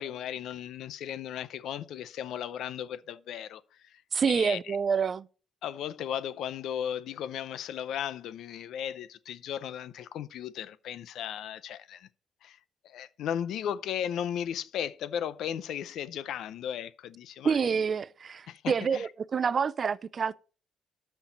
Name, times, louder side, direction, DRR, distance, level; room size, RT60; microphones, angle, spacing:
voice 1, 0.0-4.0 4.3-4.8 5.6-12.1 12.4-12.6 12.8-17.7 18.5-19.1, left 9 dB, 80° left, 0.6 m, -36 dB
voice 2, 4.1-5.3 17.4-20.4, right 6 dB, 45° right, 0.4 m, -27 dB
13.0 x 4.5 x 5.2 m
cardioid pair, 90°, 0 cm